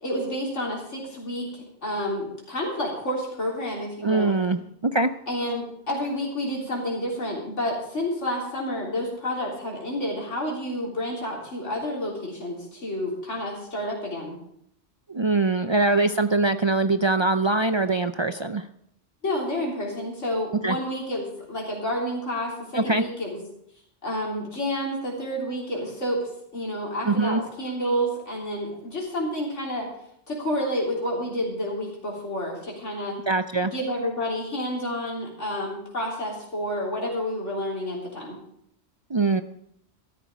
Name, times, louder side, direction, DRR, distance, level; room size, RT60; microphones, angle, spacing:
voice 1, 0.0-4.4 5.3-14.4 19.2-23.3 24.0-29.9 30.3-33.2 33.6-38.4, equal, 85° left, -3 dB, 3.9 m, -29 dB
voice 2, 4.0-5.1 15.1-18.7 20.6-20.8 22.7-23.0 27.0-27.4 33.3-33.7 39.1-39.4, right 3 dB, 45° right, 10 dB, 0.3 m, -23 dB
13.5 x 13.5 x 5.0 m, 0.73 s
omnidirectional pair, 1.2 m